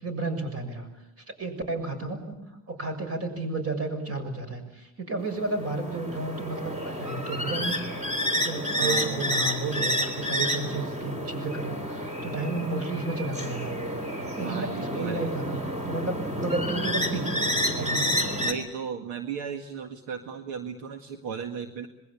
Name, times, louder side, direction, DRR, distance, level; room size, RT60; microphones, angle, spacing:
voice 1, 0.0-0.9 1.4-2.4 2.7-7.8 8.3-13.7 14.4-15.6 15.9-18.2, right 3 dB, 30° right, 7 dB, 6.9 m, -32 dB
sound 1, 5.2-18.5, equal, 15° right, 3.6 m, -30 dB
voice 2, 8.8-9.2 14.4-15.3 18.4-21.9, right 6 dB, 65° right, 6 dB, 1.9 m, -35 dB
26.5 x 21.5 x 8.5 m, 0.94 s
cardioid pair, 125°, 44 cm